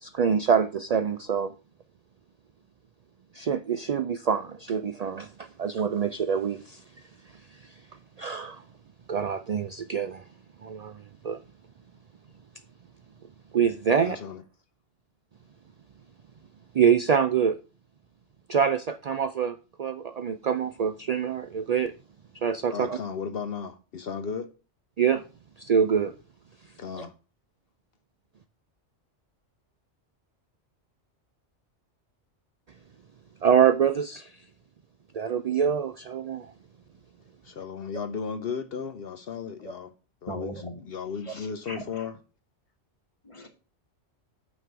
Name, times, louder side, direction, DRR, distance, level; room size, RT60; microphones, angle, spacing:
voice 1, 0.0-1.5 3.3-6.8 8.2-8.6 9.1-10.2 10.6-11.4 13.5-14.2 16.7-17.6 18.5-21.9 22.4-23.0 25.0-25.2 25.6-26.1 27.0-27.1 33.4-34.3 35.1-36.5, right 7 dB, 80° right, 0.3 m, -25 dB
voice 2, 14.0-14.4 22.7-24.5 26.8-27.1 37.4-39.9 40.2-40.5 40.8-42.2, left 6 dB, 60° left, 0.8 m, -35 dB
voice 3, 40.3-40.8 41.2-42.1 43.2-43.5, left 1 dB, 25° left, 1.4 m, -39 dB
9.3 x 3.1 x 6.7 m
omnidirectional pair, 1.2 m